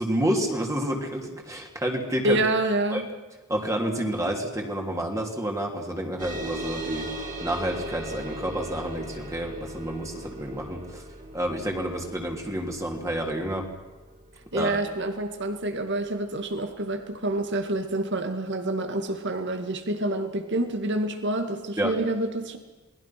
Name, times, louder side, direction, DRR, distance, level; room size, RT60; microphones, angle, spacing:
voice 1, 0.0-2.4 2.9-3.0 3.5-7.1 7.4-11.0 11.3-13.7 14.5-14.8 21.8-21.9, right 1 dB, 15° right, 1 dB, 2.9 m, -29 dB
voice 2, 2.2-3.1 14.5-22.6, right 2 dB, 55° right, 7 dB, 2.2 m, -27 dB
sound 1, 6.2-17.1, right 1 dB, 40° right, 4.1 m, -39 dB
28.5 x 20.5 x 6.0 m, 1.2 s
head